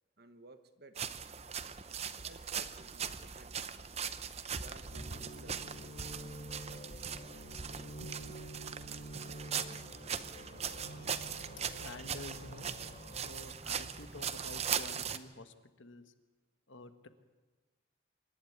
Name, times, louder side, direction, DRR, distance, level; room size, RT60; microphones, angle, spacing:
voice 1, 0.2-1.1 2.2-3.6 3.8-4.1 4.5-5.9, right 2 dB, 50° right, 9 dB, 1.3 m, -57 dB
sound 1, 1.0-15.2, right 7 dB, 30° right, 0.8 m, -40 dB
sound 2, 4.9-13.2, equal, 55° left, 1.7 m, -49 dB
voice 2, 11.8-12.7 13.2-16.1 16.7-17.1, left 2 dB, 75° left, 9 dB, 1.5 m, -49 dB
26.0 x 11.5 x 9.5 m, 1.3 s
head